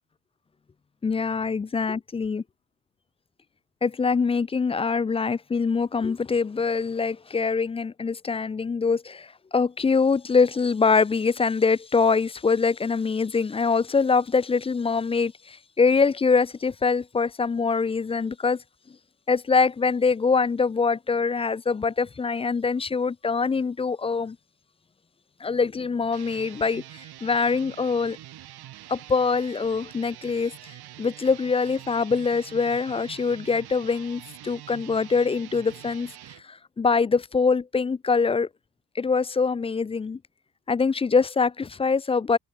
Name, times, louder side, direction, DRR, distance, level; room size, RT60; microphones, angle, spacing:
voice 1, 1.0-2.4 3.8-18.6 19.3-24.4 25.4-28.2 28.9-36.1 36.4-38.5 39.0-40.2 40.7-42.4, left 4 dB, 15° left, 0.4 m, -24 dB
sound 1, 26.0-36.4, right 14 dB, 70° right, 4.3 m, -45 dB
cardioid pair, 140°, 40 cm